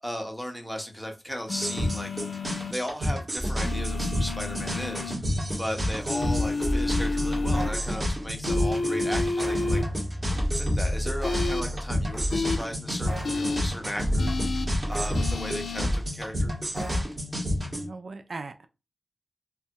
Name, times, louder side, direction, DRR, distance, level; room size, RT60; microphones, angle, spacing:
voice 1, 0.0-2.1 2.7-5.1 5.6-9.8 10.6-14.3 14.9-16.5, equal, 5° left, 3 dB, 0.9 m, -36 dB
sound 1, 1.5-2.7 3.6-5.1 6.1-7.7 8.4-9.8 11.2-11.6 12.3-12.6 13.2-13.6 14.2-14.7 15.1-15.8, left 3 dB, 75° left, 0.4 m, -30 dB
sound 2, 1.6-17.9, equal, 45° right, 1.7 m, -30 dB
sound 3, 3.4-5.2 5.4-8.7 9.4-12.6 13.1-16.1 16.7-17.0, equal, 25° right, 1.0 m, -32 dB
voice 2, 17.7-18.7, right 3 dB, 70° right, 8 dB, 0.4 m, -39 dB
3.3 x 2.1 x 2.9 m, 0.27 s
cardioid pair, 45°, 0 cm